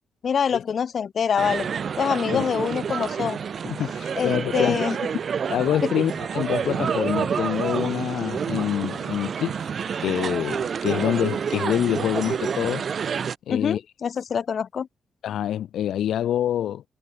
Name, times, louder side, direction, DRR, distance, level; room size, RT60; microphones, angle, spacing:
voice 1, 0.2-1.7 2.0-3.4 4.1-5.0 5.8-5.9 13.5-14.9, left 7 dB, 50° left, 1.6 m, -25 dB
sound 1, 1.4-13.4, right 7 dB, 50° right, 4.1 m, -28 dB
voice 2, 3.6-4.8 5.5-9.6 10.0-12.9 13.5-13.8 15.2-16.8, left 11 dB, 85° left, 1.4 m, -26 dB
cardioid pair, 135°, 0 cm